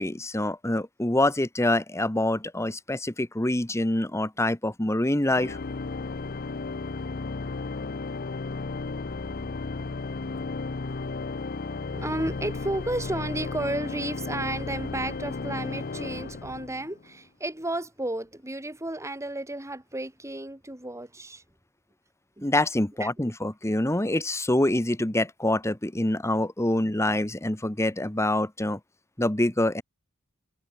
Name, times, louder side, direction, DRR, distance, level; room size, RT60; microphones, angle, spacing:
voice 1, 0.0-5.6 22.4-28.8 29.2-29.8, left 1 dB, 15° left, 1.3 m, -25 dB
Organ, 5.2-17.1, left 3 dB, 45° left, 0.7 m, -34 dB
voice 2, 11.9-21.4 22.4-22.5 23.0-23.3, right 1 dB, 15° right, 4.3 m, -33 dB
head